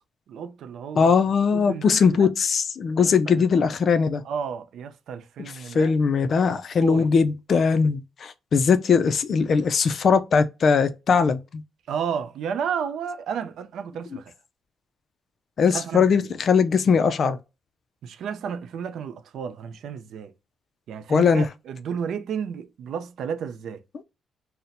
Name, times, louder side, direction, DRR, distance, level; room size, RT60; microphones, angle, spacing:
voice 1, 0.3-1.2 1.5-2.3 3.0-3.4 4.2-5.9 6.8-7.1 11.9-14.3 15.7-16.3 18.0-20.3 20.9-23.8, right 7 dB, 65° right, 0.4 m, -32 dB
voice 2, 1.0-4.2 5.7-11.4 15.6-17.4 21.1-21.4, left 5 dB, 40° left, 0.3 m, -20 dB
4.1 x 2.0 x 2.5 m
cardioid pair, 170°, 0 cm